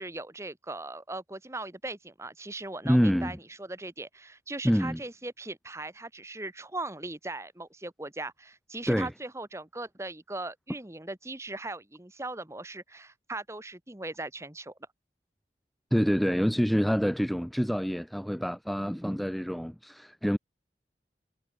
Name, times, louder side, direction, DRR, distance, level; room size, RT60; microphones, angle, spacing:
voice 1, 0.0-14.7, right 2 dB, 15° right, 1.4 m, -39 dB
voice 2, 2.8-3.4 4.6-5.0 8.9-9.1 15.9-20.4, equal, ahead, 0.5 m, -26 dB
head